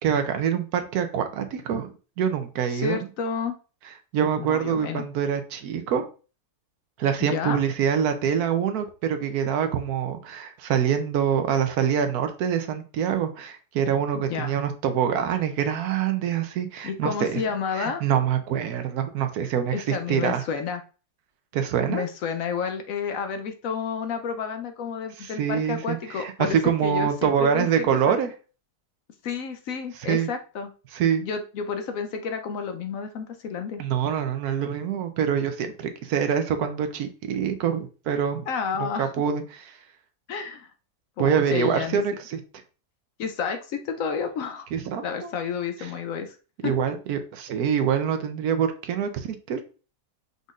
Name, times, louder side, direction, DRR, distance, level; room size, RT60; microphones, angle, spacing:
voice 1, 0.0-3.0 4.1-6.1 7.0-17.4 17.7-20.4 21.5-22.0 25.2-28.3 30.0-30.3 30.9-31.2 33.8-38.5 38.8-39.4 39.7-39.8 41.2-42.4 44.7-45.3 46.6-49.6, right 8 dB, 75° right, 8 dB, 1.2 m, -25 dB
voice 2, 2.7-3.6 4.4-5.0 7.2-7.6 14.1-14.5 16.8-18.0 19.7-20.8 21.8-28.2 29.2-30.7 31.2-33.8 38.5-39.1 40.3-40.7 41.2-42.0 43.2-44.7 45.0-46.4 46.6-46.7, left 6 dB, 65° left, 7 dB, 0.9 m, -30 dB
5.2 x 3.9 x 2.4 m, 0.35 s
omnidirectional pair, 1.7 m